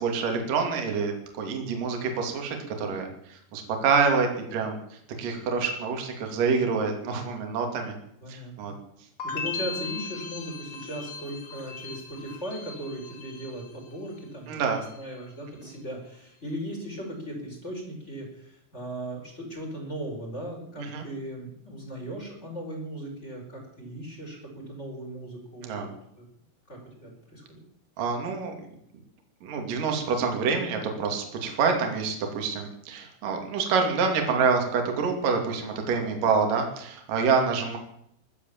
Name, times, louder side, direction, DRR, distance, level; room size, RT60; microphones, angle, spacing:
voice 1, 0.0-8.0 8.3-8.7 14.5-14.8 15.6-15.7 20.8-21.0 25.6-25.9 28.0-28.6 29.4-37.8, right 5 dB, 55° right, 3 dB, 3.9 m, -27 dB
voice 2, 8.2-8.7 9.2-14.6 15.0-25.9 26.2-26.3 26.7-27.6, right 1 dB, 15° left, 1 dB, 5.1 m, -38 dB
sound 1, 9.2-14.2 14.5-15.2, left 5 dB, 40° left, 2.0 m, -38 dB
16.0 x 12.0 x 7.3 m, 0.73 s
omnidirectional pair, 4.9 m